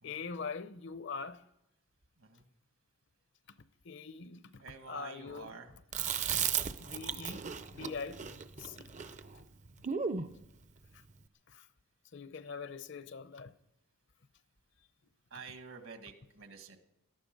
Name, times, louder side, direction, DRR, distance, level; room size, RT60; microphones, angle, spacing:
voice 1, 0.0-1.4 3.8-5.6 6.8-8.2 8.6-8.9 11.5-11.7 12.1-13.5, left 5 dB, 55° left, 0.7 m, -43 dB
voice 2, 4.6-5.7 8.8-8.9 15.3-16.8, right 5 dB, 70° right, 1.8 m, -49 dB
Chewing mastication, 5.9-10.3, right 7 dB, 35° right, 0.6 m, -36 dB
18.0 x 12.5 x 5.3 m
head